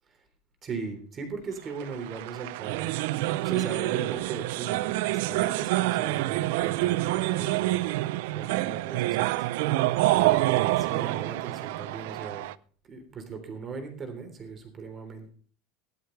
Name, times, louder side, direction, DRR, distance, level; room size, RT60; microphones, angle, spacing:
voice 1, 0.6-3.0 3.3-8.0 8.3-9.5 10.1-12.5 12.8-15.3, right 5 dB, 25° right, 6 dB, 3.5 m, -38 dB
sound 1, 1.8-12.5, right 17 dB, 80° right, 0.5 m, -27 dB
17.0 x 12.5 x 3.3 m, 0.43 s
cardioid pair, 155°, 0 cm